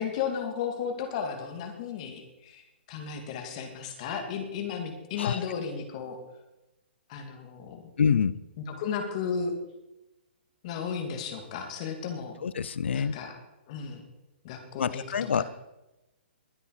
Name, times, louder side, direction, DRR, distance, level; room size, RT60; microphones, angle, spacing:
voice 1, 0.0-6.2 7.1-7.9 8.8-9.5 10.6-12.4 12.9-13.4 13.7-14.0 14.4-15.0 15.4-15.5, left 6 dB, 35° left, 5 dB, 2.7 m, -34 dB
voice 2, 8.0-8.4 12.4-13.2 14.8-15.4, left 7 dB, 85° left, 18 dB, 0.6 m, -26 dB
21.5 x 8.3 x 5.0 m, 0.98 s
hypercardioid pair, 160°, 6 cm